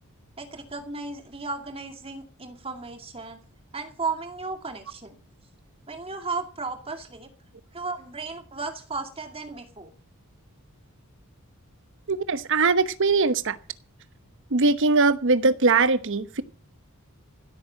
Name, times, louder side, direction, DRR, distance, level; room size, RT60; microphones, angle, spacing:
voice 1, 0.4-3.4 3.7-5.2 5.9-7.3 7.7-9.9, right 4 dB, 25° right, 2.4 m, -34 dB
voice 2, 12.1-13.6 14.5-16.4, right 3 dB, 60° right, 1.0 m, -21 dB
16.5 x 8.5 x 7.5 m
head